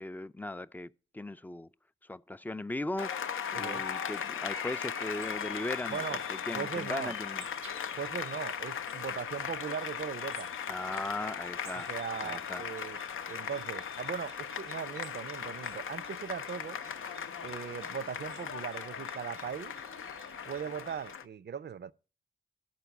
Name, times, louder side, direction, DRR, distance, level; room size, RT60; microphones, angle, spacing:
voice 1, 0.0-1.7 2.1-3.3 3.6-7.4 10.7-11.9 12.2-12.6, left 2 dB, 10° left, 0.4 m, -38 dB
Applause, 3.0-21.3, left 8 dB, 75° left, 0.6 m, -38 dB
voice 2, 3.5-3.9 5.9-6.2 6.5-7.2 7.9-10.5 11.7-13.0 13.3-16.8 17.4-19.8 20.5-21.9, right 7 dB, 55° right, 0.5 m, -39 dB
sound 1, 5.0-21.2, right 6 dB, 80° right, 0.8 m, -55 dB
11.0 x 4.4 x 7.0 m
cardioid pair, 40°, 21 cm